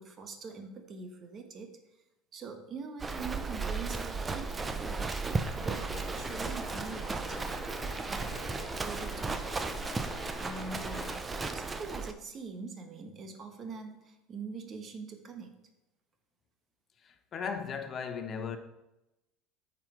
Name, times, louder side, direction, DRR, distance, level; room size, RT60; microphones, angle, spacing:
voice 1, 0.0-2.0 2.3-5.2 5.5-7.4 8.1-8.4 8.8-9.4 10.3-11.2 11.5-15.7, right 4 dB, 40° right, 1.3 m, -44 dB
Livestock farm animals working animals, 3.0-12.1, right 4 dB, 20° right, 0.7 m, -35 dB
sound 1, 5.6-11.2, left 11 dB, 55° left, 0.5 m, -48 dB
voice 2, 17.0-18.6, left 6 dB, 40° left, 1.0 m, -37 dB
9.0 x 5.5 x 4.6 m
hypercardioid pair, 80°, 0 cm